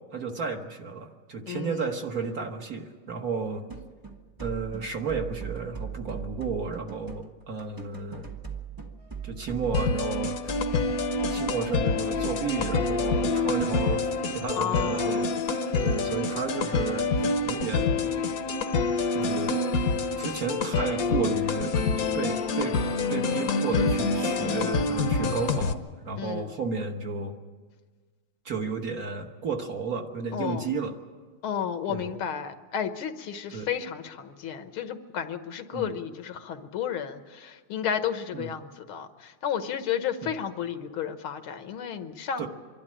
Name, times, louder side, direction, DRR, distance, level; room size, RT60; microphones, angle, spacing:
voice 1, 0.1-3.6 4.4-8.3 9.2-10.6 11.3-14.1 14.3-15.3 15.8-18.1 19.1-19.6 20.2-22.8 23.1-27.4 28.4-30.9 31.9-32.2 33.5-33.7 35.7-35.9 38.3-38.5 40.2-40.3 42.4-42.5, right 5 dB, 50° right, 3 dB, 1.6 m, -33 dB
voice 2, 1.5-1.9 14.6-15.2 24.4-24.9 26.2-26.5 30.3-30.7 31.4-42.5, left 8 dB, 80° left, 9 dB, 1.9 m, -32 dB
sound 1, 3.7-13.3, right 7 dB, 20° right, 0.6 m, -39 dB
sound 2, 9.0-17.7, right 4 dB, 70° right, 2.9 m, -47 dB
sound 3, 9.7-25.7, left 3 dB, 50° left, 1.2 m, -27 dB
25.0 x 12.0 x 9.9 m, 1.5 s
omnidirectional pair, 2.3 m